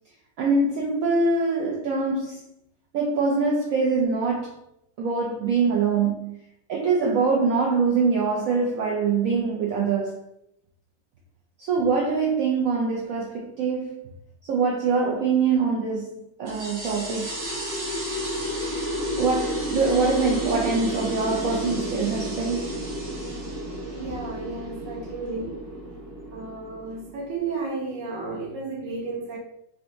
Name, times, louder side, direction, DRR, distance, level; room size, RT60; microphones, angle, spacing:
voice 1, 0.4-2.5 2.9-4.5 5.0-6.4 6.7-10.2 11.6-14.0 14.5-17.5 19.2-22.7, right 4 dB, 90° right, -2 dB, 0.7 m, -24 dB
sound 1, 16.5-27.5, equal, 55° right, 0.8 m, -31 dB
voice 2, 23.9-25.6 26.3-29.4, right 3 dB, 75° right, -1 dB, 1.3 m, -33 dB
3.8 x 2.2 x 2.6 m, 0.79 s
omnidirectional pair, 2.0 m